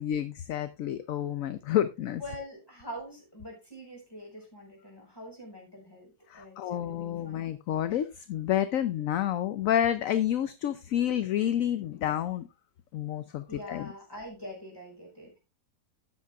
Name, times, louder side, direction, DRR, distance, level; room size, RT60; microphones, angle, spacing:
voice 1, 0.0-2.2 6.3-12.4 12.9-13.9, left 11 dB, 65° left, 12 dB, 0.9 m, -29 dB
voice 2, 2.2-7.5 13.5-15.4, equal, 15° left, 0 dB, 5.0 m, -44 dB
13.0 x 9.6 x 2.4 m, 0.26 s
omnidirectional pair, 1.8 m